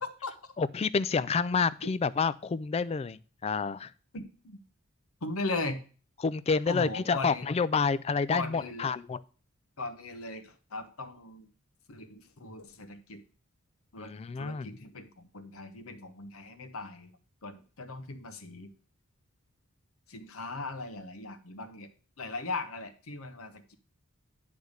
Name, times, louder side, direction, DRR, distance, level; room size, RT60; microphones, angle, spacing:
voice 1, 0.0-0.3 4.1-4.6 5.2-5.8 6.7-7.5 8.3-8.9 9.8-11.5 11.9-13.2 13.9-17.2 17.4-18.7 20.1-21.9 22.2-23.7, left 2 dB, 80° left, 8 dB, 1.0 m, -38 dB
voice 2, 0.6-3.9 6.2-9.2 14.0-14.7, left 5 dB, 30° left, 16 dB, 0.3 m, -29 dB
10.0 x 3.4 x 6.4 m, 0.39 s
head